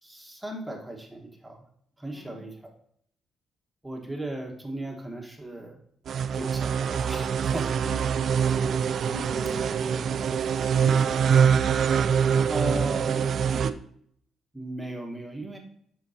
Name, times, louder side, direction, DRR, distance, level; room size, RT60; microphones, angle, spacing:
voice 1, 0.0-1.6 2.0-2.6 3.8-5.8 6.3-7.7 12.5-13.7 14.5-15.6, right 1 dB, 10° right, 1 dB, 1.4 m, -36 dB
voice 2, 2.1-2.5 7.8-8.6 9.0-10.3 10.7-11.6 12.6-13.7, left 1 dB, 55° left, -1 dB, 2.4 m, -43 dB
sound 1, 6.1-13.7, right 7 dB, 60° right, 0.3 m, -24 dB
10.5 x 4.6 x 2.8 m, 0.66 s
supercardioid pair, 55°, 0 cm